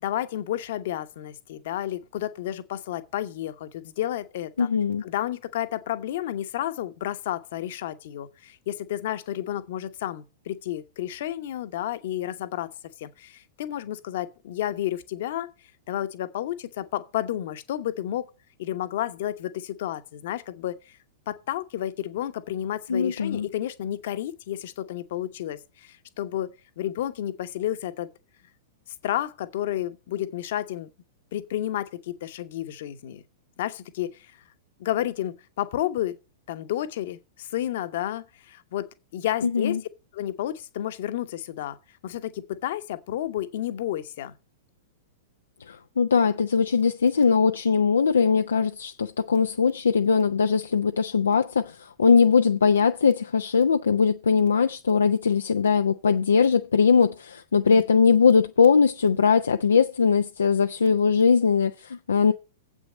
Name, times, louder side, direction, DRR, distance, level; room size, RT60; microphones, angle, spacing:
voice 1, 0.0-4.7 5.0-12.7 13.0-15.5 15.9-18.3 18.6-21.0 21.3-28.1 29.0-30.9 31.3-33.2 33.6-34.3 34.8-36.2 36.5-39.8 40.1-41.8 42.0-44.4 57.6-57.8, left 12 dB, 50° left, 1.0 m, -31 dB
voice 2, 4.6-5.0 22.9-23.5 39.4-39.8 45.7-62.3, left 5 dB, 70° left, 0.5 m, -21 dB
8.0 x 6.3 x 7.8 m
figure-of-eight pair, 100°, 0 cm